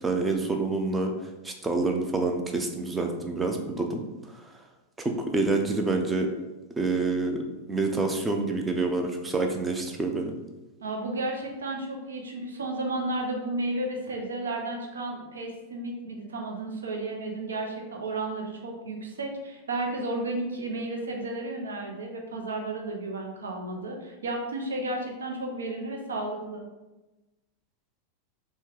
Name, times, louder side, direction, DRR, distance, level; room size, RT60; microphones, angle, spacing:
voice 1, 0.0-1.1 1.4-4.0 4.4-4.5 5.0-6.3 6.8-7.4 7.7-10.3, right 3 dB, 10° right, 3 dB, 0.5 m, -27 dB
voice 2, 10.8-26.7, right 2 dB, 70° right, 1 dB, 0.6 m, -33 dB
4.1 x 2.3 x 3.5 m, 1.1 s
figure-of-eight pair, 90°, 0 cm